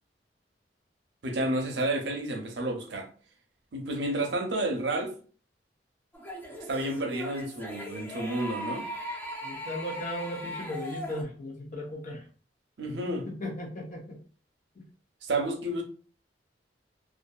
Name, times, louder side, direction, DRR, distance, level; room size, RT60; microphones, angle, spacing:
voice 1, 1.2-3.1 3.7-5.1 6.7-8.9 12.8-13.3 15.2-15.8, right 1 dB, 75° right, 0.6 m, -30 dB
sound 1, 6.1-11.2, equal, 10° left, 0.5 m, -39 dB
voice 2, 9.4-12.2 13.4-14.2, left 1 dB, 50° left, 0.8 m, -36 dB
2.6 x 2.5 x 2.3 m
head